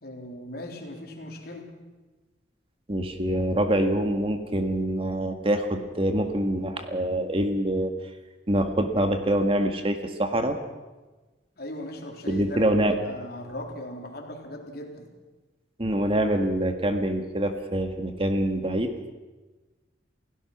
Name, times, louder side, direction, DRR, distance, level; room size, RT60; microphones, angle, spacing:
voice 1, 0.0-1.7 11.6-12.7 13.0-15.1, left 1 dB, 55° left, 1 dB, 4.0 m, -38 dB
voice 2, 2.9-7.9 8.5-10.6 12.3-13.0 15.8-18.9, right 1 dB, 30° right, 6 dB, 1.8 m, -25 dB
29.0 x 17.0 x 6.0 m, 1.2 s
head